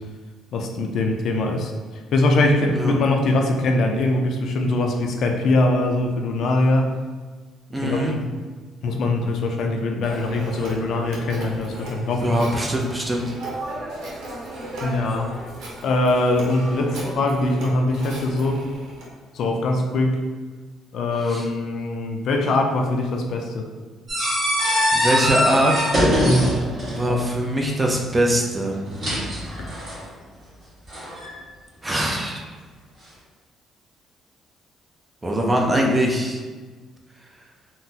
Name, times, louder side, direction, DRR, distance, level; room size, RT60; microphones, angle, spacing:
voice 1, 0.5-6.9 7.8-8.2 8.8-12.4 14.8-15.3 15.8-18.6 19.3-20.2 20.9-23.7 26.2-26.6, left 2 dB, 60° left, 2 dB, 0.4 m, -22 dB
voice 2, 7.7-8.1 12.2-13.3 21.3-21.5 24.9-25.9 26.9-28.8 31.8-32.4 35.2-36.4, right 1 dB, 15° right, 0 dB, 0.4 m, -22 dB
Telephone, 10.0-19.1, right 1 dB, 75° right, 0.8 m, -35 dB
sound 1, 24.1-27.1 28.7-30.0 30.9-31.3, equal, 35° right, 1.4 m, -22 dB
3.8 x 2.0 x 2.7 m, 1.4 s
cardioid pair, 130°, 0 cm